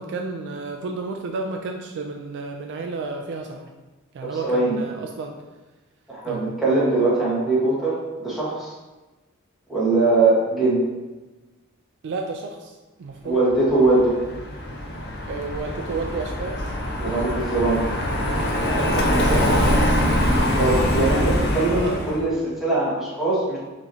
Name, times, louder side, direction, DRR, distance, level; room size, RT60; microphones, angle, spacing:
voice 1, 0.0-3.7 4.1-5.3 6.3-6.5 12.0-13.4 15.3-16.7 17.0-17.2 18.2-20.0 21.8-22.1, right 3 dB, 55° right, 3 dB, 0.3 m, -32 dB
voice 2, 4.2-4.8 6.1-8.7 9.7-10.8 13.2-14.2 17.0-17.8 20.5-23.6, right 2 dB, ahead, -9 dB, 1.3 m, -21 dB
Car passing by, 13.7-22.2, equal, 50° left, 0.7 m, -23 dB
5.7 x 3.0 x 2.7 m, 1.2 s
head